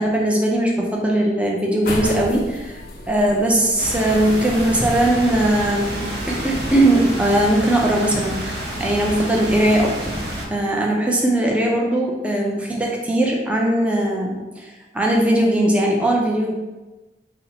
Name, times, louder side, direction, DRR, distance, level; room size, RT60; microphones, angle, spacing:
voice 1, 0.0-2.8 3.1-6.0 6.3-10.1 10.5-16.5, right 1 dB, 5° right, -2 dB, 0.4 m, -19 dB
sound 1, 1.8-6.9, left 1 dB, 55° left, 0.6 m, -34 dB
sound 2, 3.8-10.5, right 1 dB, 65° right, 0.8 m, -29 dB
4.3 x 2.0 x 3.8 m, 1.1 s
head